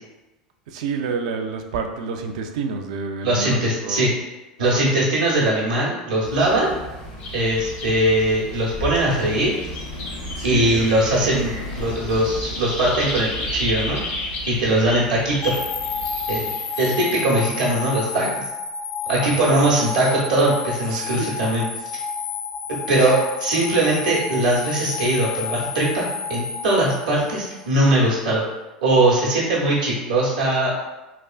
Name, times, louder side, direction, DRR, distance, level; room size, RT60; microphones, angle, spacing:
voice 1, 0.7-4.1 4.6-4.8 10.3-11.4 19.2-19.7 20.9-21.4, right 5 dB, 70° right, 5 dB, 0.3 m, -29 dB
voice 2, 3.2-4.1 4.6-6.7 7.3-9.6 10.4-14.0 14.5-15.5 16.3-16.5 16.8-18.3 19.1-21.7 22.9-28.4 28.8-30.7, right 1 dB, 85° right, -6 dB, 0.8 m, -20 dB
sound 1, 6.2-16.5, right 1 dB, 75° left, 1.1 m, -35 dB
sound 2, 7.2-17.0, left 2 dB, 55° left, 0.9 m, -34 dB
sound 3, 15.4-27.6, left 5 dB, 35° left, 0.4 m, -30 dB
3.3 x 2.4 x 2.3 m, 1.1 s
hypercardioid pair, 80°, 4 cm